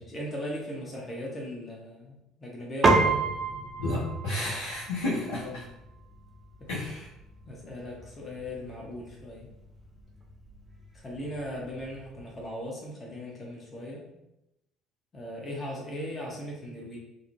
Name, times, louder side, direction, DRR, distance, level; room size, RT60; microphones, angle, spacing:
voice 1, 0.0-3.2 5.4-5.8 6.6-6.7 7.5-9.5 10.9-14.0 15.1-17.0, left 1 dB, 30° left, -3 dB, 0.7 m, -38 dB
Piano, 2.8-12.4, right 3 dB, 30° right, 0.5 m, -32 dB
voice 2, 3.8-5.5 6.7-7.1, left 1 dB, 75° left, -8 dB, 0.6 m, -31 dB
2.6 x 2.1 x 2.6 m, 0.87 s
hypercardioid pair, 55°, 0 cm